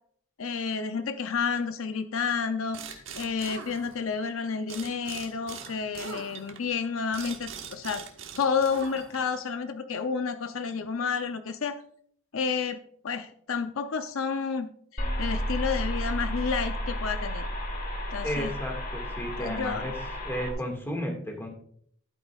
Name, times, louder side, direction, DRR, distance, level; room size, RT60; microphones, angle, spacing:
voice 1, 0.4-8.0 8.4-11.8 12.3-12.8 13.0-14.7 14.9-17.4 18.1-18.5 19.4-19.9, left 5 dB, 70° left, 9 dB, 0.6 m, -30 dB
sound 1, 2.7-4.3 4.7-9.4, right 6 dB, 60° right, 1.3 m, -42 dB
sound 2, 15.0-20.5, equal, 40° left, 1.5 m, -32 dB
voice 2, 18.2-19.9 20.3-21.5, equal, 10° left, 2 dB, 1.9 m, -33 dB
11.5 x 9.1 x 2.4 m, 0.64 s
head